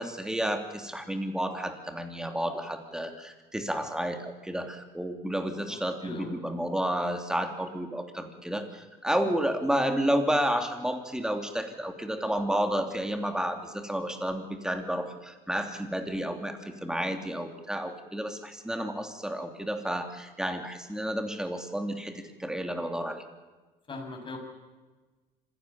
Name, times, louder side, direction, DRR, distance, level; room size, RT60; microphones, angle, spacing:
voice 1, 0.0-23.2, equal, 5° right, 6 dB, 3.1 m, -31 dB
voice 2, 5.7-6.3 9.2-9.3 23.9-24.4, left 2 dB, 30° left, 2 dB, 7.4 m, -40 dB
26.0 x 17.0 x 7.2 m, 1.3 s
cardioid pair, 110°, 17 cm